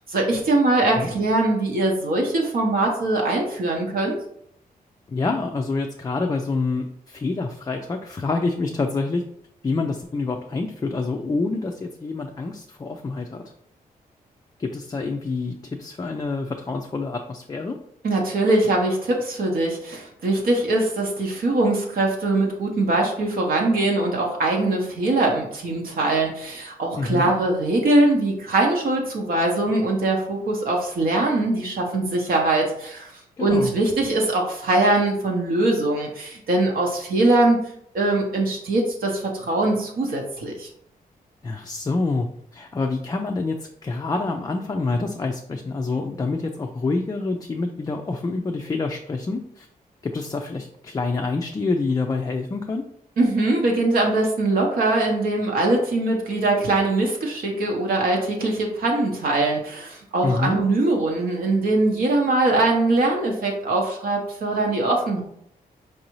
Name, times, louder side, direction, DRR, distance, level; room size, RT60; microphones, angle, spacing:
voice 1, 0.1-4.2 18.0-33.1 33.4-37.7 37.9-40.7 53.2-65.2, right 2 dB, 70° right, 0 dB, 0.9 m, -22 dB
voice 2, 5.1-9.2 9.6-13.4 14.6-17.8 27.0-27.3 33.4-33.7 41.4-49.7 50.0-52.8 60.2-60.6, left 3 dB, 25° left, 3 dB, 0.3 m, -27 dB
4.7 x 2.6 x 3.0 m, 0.70 s
cardioid pair, 95°, 16 cm